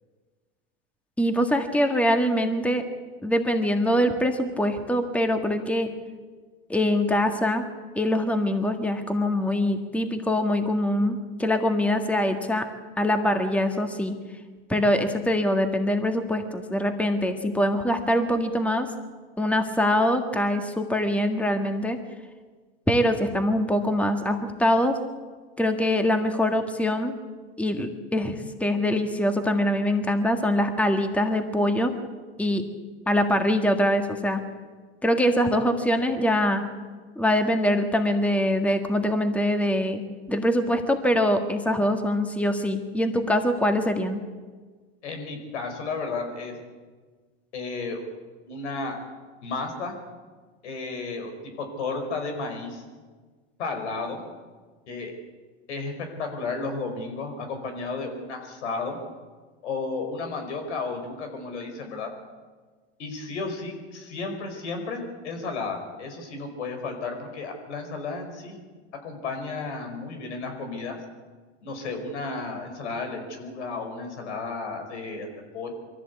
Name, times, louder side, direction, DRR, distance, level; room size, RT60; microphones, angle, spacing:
voice 1, 1.2-2.8 3.2-5.9 6.7-7.6 7.9-12.7 13.0-14.1 14.7-18.9 19.4-22.0 22.9-25.0 25.6-27.1 27.6-31.9 32.4-32.6 33.1-34.4 35.0-36.6 37.1-40.0 40.3-44.2, left 1 dB, 5° left, 6 dB, 1.7 m, -23 dB
voice 2, 45.0-46.5 47.5-48.0 48.5-49.0 49.4-50.0 50.6-52.8 53.6-54.2 54.9-55.1 55.7-55.9 56.2-59.0 59.6-62.1 63.0-68.6 69.0-71.0 71.6-75.3 75.5-75.7, left 3 dB, 85° left, 5 dB, 5.0 m, -33 dB
23.0 x 15.0 x 8.3 m, 1.4 s
supercardioid pair, 110°, 34 cm